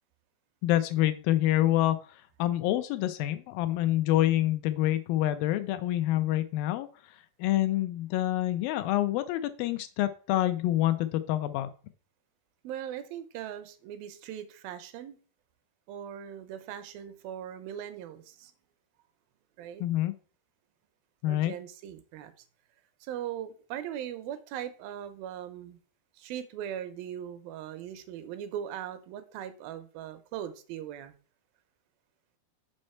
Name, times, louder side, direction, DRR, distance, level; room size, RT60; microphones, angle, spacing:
voice 1, 0.6-2.0 2.4-6.9 7.4-11.7 19.8-20.1 21.2-21.5, left 14 dB, 80° left, 11 dB, 2.2 m, -27 dB
voice 2, 12.6-15.2 15.9-18.5 19.6-19.8 21.2-22.3 23.1-25.8 26.2-31.1, right 10 dB, 80° right, 10 dB, 2.4 m, -39 dB
6.4 x 5.3 x 4.3 m, 0.39 s
omnidirectional pair, 4.3 m